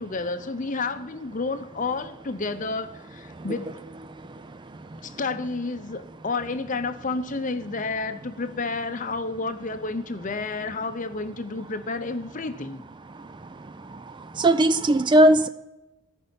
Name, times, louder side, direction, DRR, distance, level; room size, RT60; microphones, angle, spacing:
voice 1, 0.0-3.8 5.0-12.8, left 3 dB, 40° left, 0.7 m, -30 dB
voice 2, 4.1-5.2 13.1-15.5, right 1 dB, 20° right, 0.4 m, -22 dB
14.0 x 5.5 x 8.5 m
head